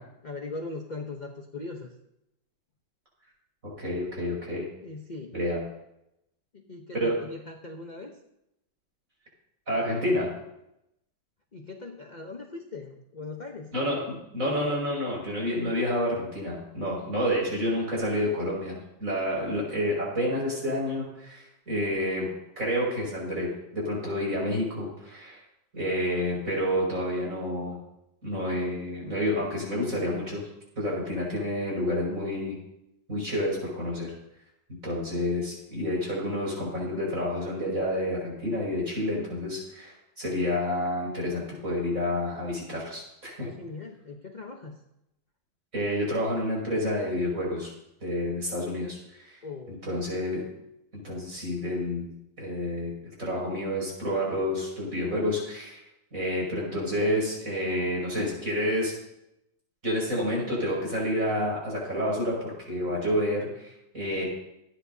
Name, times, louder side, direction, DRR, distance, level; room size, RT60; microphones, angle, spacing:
voice 1, 0.2-1.9 4.8-5.4 6.5-8.2 11.5-13.7 43.4-44.8 49.4-49.8, left 3 dB, 35° left, 2 dB, 0.8 m, -40 dB
voice 2, 3.8-4.7 5.3-5.6 6.9-7.1 9.7-10.3 13.7-22.3 22.6-25.4 25.7-27.8 28.2-30.4 30.8-32.6 33.1-34.1 34.8-43.5 45.7-47.7 48.0-49.4 49.7-50.5 51.0-52.1 52.4-55.8 56.1-58.9 59.8-64.3, left 1 dB, 45° right, -3 dB, 6.4 m, -29 dB
26.0 x 10.0 x 2.8 m, 0.85 s
omnidirectional pair, 2.0 m